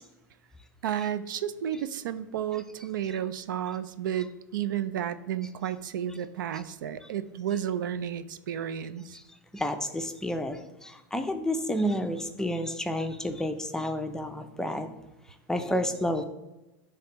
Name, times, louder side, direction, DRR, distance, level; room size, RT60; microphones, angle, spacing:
voice 1, 0.8-9.2, right 10 dB, 90° right, 13 dB, 0.4 m, -32 dB
voice 2, 9.5-14.9 15.5-16.2, equal, 5° left, 7 dB, 0.5 m, -30 dB
9.9 x 3.4 x 3.0 m, 1.0 s
supercardioid pair, 120°, 10 cm